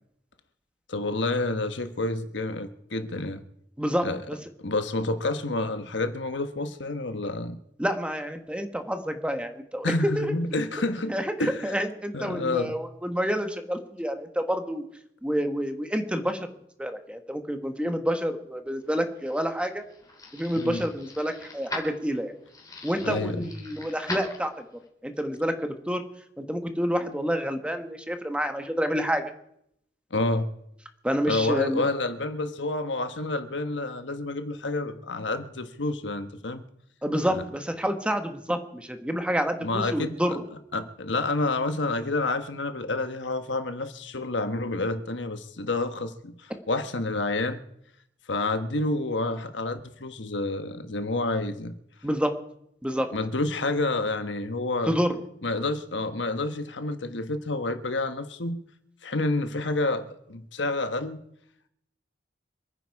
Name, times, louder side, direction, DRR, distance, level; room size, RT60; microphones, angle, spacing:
voice 1, 0.9-3.4 4.0-4.2 4.6-7.6 9.8-11.8 12.1-12.7 20.5-20.8 23.0-23.5 30.1-30.5 31.3-36.6 37.3-37.4 39.6-40.2 40.7-47.6 48.3-51.7 53.1-54.9 55.4-58.6 59.0-61.2, left 2 dB, 70° left, 9 dB, 1.3 m, -29 dB
voice 2, 3.8-4.4 7.8-10.3 11.1-14.8 15.2-16.5 16.8-19.8 20.3-22.3 22.8-24.6 25.0-26.0 26.4-29.3 31.0-31.9 37.0-40.4 52.0-52.3 52.8-53.1 54.9-55.2, equal, 5° right, 7 dB, 1.5 m, -28 dB
sound 1, 19.1-24.9, left 2 dB, 20° left, 3.6 m, -41 dB
26.5 x 9.9 x 4.8 m, 0.73 s
head